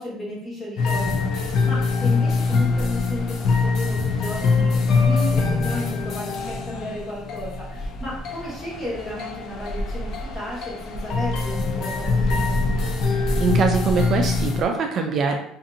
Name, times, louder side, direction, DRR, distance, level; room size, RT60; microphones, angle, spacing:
voice 1, 0.0-12.9, left 1 dB, 25° left, -6 dB, 1.2 m, -34 dB
sound 1, 0.8-14.6, left 4 dB, 60° left, 0.4 m, -23 dB
voice 2, 13.1-15.4, right 5 dB, 45° right, 3 dB, 0.4 m, -23 dB
2.7 x 2.5 x 2.6 m, 0.73 s
cardioid pair, 125°, 0 cm